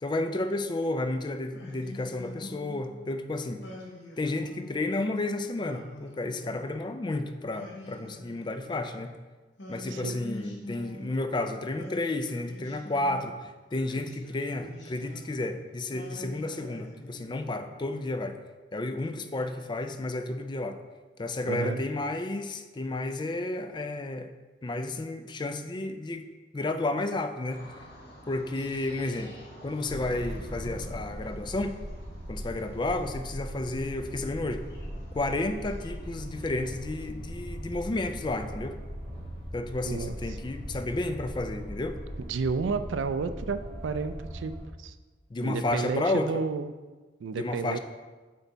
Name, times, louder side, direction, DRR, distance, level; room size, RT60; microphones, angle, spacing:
voice 1, 0.0-3.6 4.2-9.1 9.7-18.4 18.7-20.8 21.2-24.3 24.6-26.3 26.5-27.6 28.3-29.3 29.6-31.7 32.3-34.6 35.1-38.7 39.5-42.0 45.3-46.4 47.3-47.8, left 2 dB, 25° left, 8 dB, 0.4 m, -32 dB
Singing, 1.5-3.0 3.6-4.9 5.5-6.9 7.5-9.0 9.6-11.4 11.8-13.4 13.9-15.5 15.9-17.5, left 1 dB, 70° left, 1.1 m, -45 dB
voice 2, 21.4-21.8 39.9-40.1 42.2-44.5 44.8-44.9 45.4-46.7 47.2-47.8, right 4 dB, 85° right, 11 dB, 0.4 m, -31 dB
sound 1, 27.5-37.1, equal, 55° left, 1.6 m, -50 dB
sound 2, 29.9-44.6, equal, 35° right, 1.9 m, -40 dB
8.3 x 3.4 x 3.9 m, 1.3 s
head